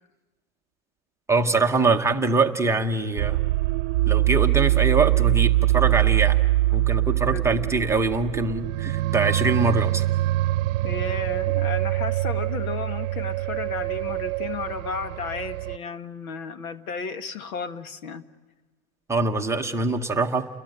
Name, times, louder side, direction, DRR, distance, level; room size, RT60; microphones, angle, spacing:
voice 1, 1.3-3.4 4.1-6.4 6.7-10.1 19.1-20.5, right 3 dB, 5° right, 3 dB, 0.8 m, -23 dB
sound 1, 3.2-15.8, right 17 dB, 60° right, 0.8 m, -23 dB
voice 2, 7.3-7.7 10.8-18.3, left 5 dB, 85° left, 9 dB, 1.8 m, -34 dB
30.0 x 21.5 x 9.0 m, 1.3 s
supercardioid pair, 150°, 42 cm